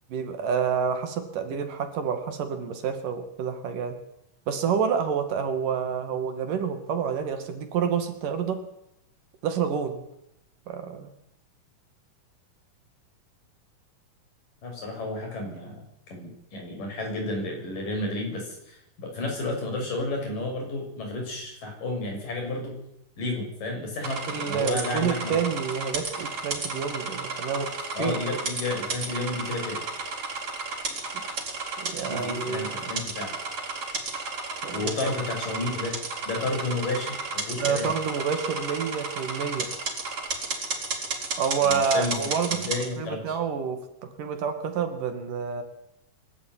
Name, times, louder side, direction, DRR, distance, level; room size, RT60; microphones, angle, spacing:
voice 1, 0.1-4.0 4.5-8.6 9.4-10.0 10.7-11.1 24.3-27.7 28.0-28.4 30.9-31.4 31.8-32.8 34.6-34.9 37.6-39.7 41.4-42.7 43.0-45.6, right 6 dB, 70° right, 8 dB, 3.9 m, -28 dB
voice 2, 14.6-15.8 16.1-22.7 23.2-25.4 28.0-29.8 32.1-33.3 34.7-36.0 36.3-37.9 41.6-43.4, left 2 dB, 70° left, 1 dB, 8.7 m, -31 dB
sound 1, 24.0-42.9, right 4 dB, 45° right, 5.2 m, -33 dB
25.0 x 13.0 x 9.5 m, 0.80 s
omnidirectional pair, 3.9 m